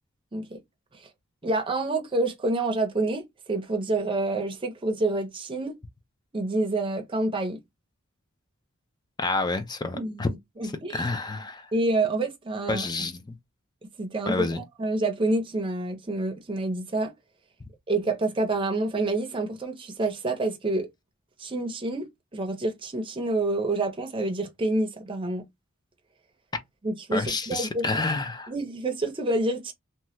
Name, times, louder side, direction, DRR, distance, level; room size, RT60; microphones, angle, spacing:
voice 1, 1.4-5.8 6.3-7.6 9.9-11.0 11.7-12.8 14.0-17.1 17.9-20.9 21.4-25.5 26.8-27.8 28.5-29.7, right 2 dB, 25° right, 0.6 m, -28 dB
voice 2, 9.2-10.3 10.6-11.7 12.7-13.2 14.3-14.6 27.1-28.5, left 3 dB, 20° left, 0.4 m, -29 dB
2.8 x 2.2 x 3.0 m
head